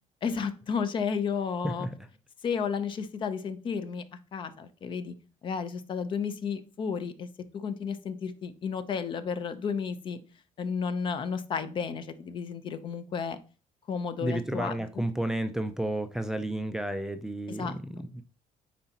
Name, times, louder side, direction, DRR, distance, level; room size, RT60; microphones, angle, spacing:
voice 1, 0.2-1.9 2.4-4.0 4.3-5.1 5.4-7.3 7.5-10.2 10.6-13.4 13.9-14.7 17.5-17.8, left 6 dB, 40° left, 0.7 m, -32 dB
voice 2, 14.2-18.2, right 1 dB, 5° right, 0.4 m, -32 dB
9.3 x 4.0 x 2.8 m
cardioid pair, 150°, 13 cm